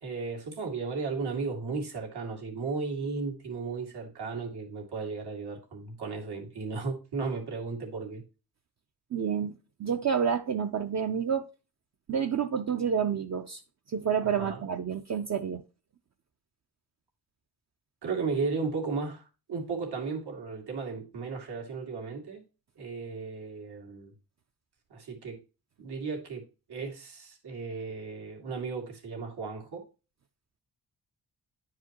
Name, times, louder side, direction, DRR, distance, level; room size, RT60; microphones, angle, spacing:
voice 1, 0.0-8.2 14.2-14.7 18.0-22.4 22.8-24.1 24.9-25.4 25.8-26.4 26.7-29.8, right 4 dB, 90° right, 2.3 m, -35 dB
voice 2, 9.1-9.5 9.8-11.5 12.1-13.6 13.9-15.6, right 7 dB, 45° right, 0.5 m, -29 dB
9.9 x 4.8 x 2.9 m
wide cardioid pair, 155°, 38 cm